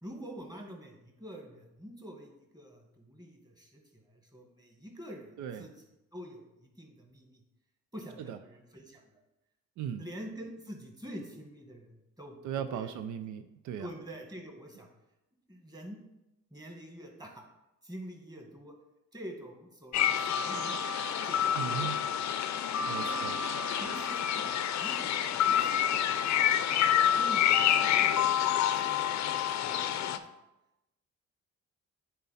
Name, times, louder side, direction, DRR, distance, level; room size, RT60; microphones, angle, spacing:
voice 1, 0.0-5.7 6.1-7.4 7.9-9.0 10.0-12.9 13.8-14.9 15.5-16.0 16.5-17.4 17.8-18.7 19.1-20.8 21.2-22.0 23.0-23.3 23.8-26.9 27.2-29.0 29.3-30.4, equal, 15° right, 1 dB, 1.7 m, -47 dB
voice 2, 5.4-5.7 8.2-8.4 9.8-10.0 12.4-13.9 21.5-22.0 22.9-23.4, right 9 dB, 75° right, 10 dB, 0.5 m, -37 dB
sound 1, 19.9-30.2, left 9 dB, 65° left, 0.6 m, -28 dB
9.4 x 4.1 x 4.2 m, 0.93 s
cardioid pair, 90°, 30 cm